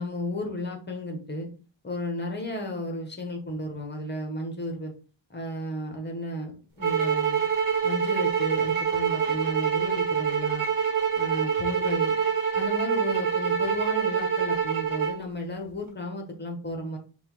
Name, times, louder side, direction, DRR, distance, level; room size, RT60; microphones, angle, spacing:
voice 1, 0.0-1.5 1.8-4.9 5.3-7.4 7.8-10.7 11.1-12.2 12.5-17.0, left 1 dB, 20° left, 3 dB, 0.7 m, -33 dB
sound 1, 6.8-15.2, right 7 dB, 75° right, 1.0 m, -25 dB
5.3 x 2.2 x 3.0 m, 0.36 s
wide cardioid pair, 180°, 49 cm